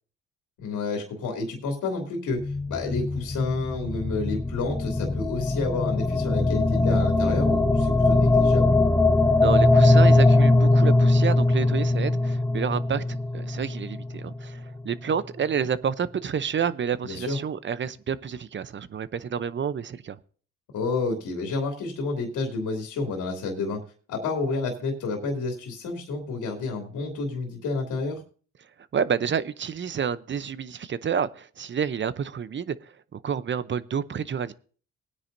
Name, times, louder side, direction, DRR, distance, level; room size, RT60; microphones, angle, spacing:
voice 1, 0.6-8.7 17.0-17.4 20.7-23.8 24.1-28.2, left 3 dB, 85° left, 2.9 m, -30 dB
sound 1, 2.3-14.6, left 2 dB, 10° left, 0.6 m, -21 dB
voice 2, 9.4-20.2 28.9-34.5, right 7 dB, 40° right, 0.7 m, -29 dB
19.5 x 9.7 x 2.7 m
cardioid pair, 90°, 30 cm